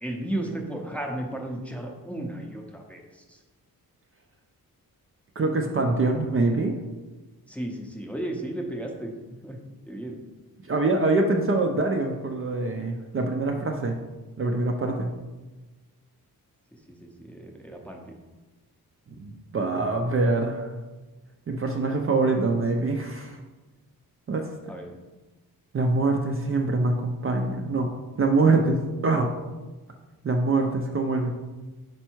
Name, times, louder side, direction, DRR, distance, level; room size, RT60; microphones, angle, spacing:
voice 1, 0.0-3.4 7.5-9.6 9.9-10.2 17.0-18.2 24.7-24.9, right 1 dB, 5° left, 0 dB, 0.6 m, -34 dB
voice 2, 5.4-6.8 10.7-14.0 14.4-15.1 19.1-20.7 21.5-23.4 24.3-24.5 25.7-27.9 28.2-29.3 30.2-31.3, right 3 dB, 35° right, 2 dB, 0.5 m, -24 dB
5.3 x 4.5 x 4.5 m, 1.2 s
wide cardioid pair, 155°, 37 cm